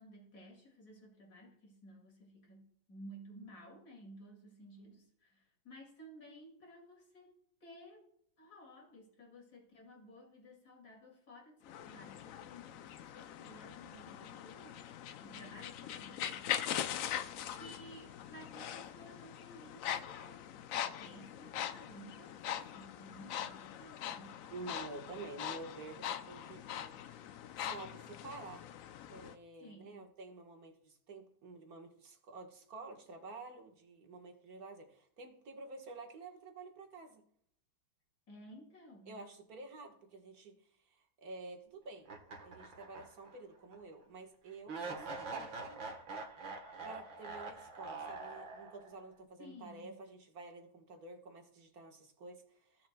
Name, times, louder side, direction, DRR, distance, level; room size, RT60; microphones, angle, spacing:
voice 1, 0.0-7.3 7.6-8.1 8.4-14.8 15.2-17.3 17.5-24.4 29.6-30.0 38.3-39.2 49.4-50.0, equal, 55° left, 0 dB, 2.9 m, -55 dB
sound 1, 11.6-29.3, left 10 dB, 90° left, 0.7 m, -42 dB
voice 2, 24.5-27.3 27.6-28.7 29.1-37.2 39.1-40.6 40.9-42.1 42.4-45.8 46.8-52.9, right 3 dB, 55° right, 2 dB, 1.8 m, -50 dB
sound 2, 42.0-43.4 43.7-43.8 44.7-49.0, right 3 dB, 80° right, 2.2 m, -44 dB
15.5 x 7.1 x 2.3 m, 0.67 s
omnidirectional pair, 2.1 m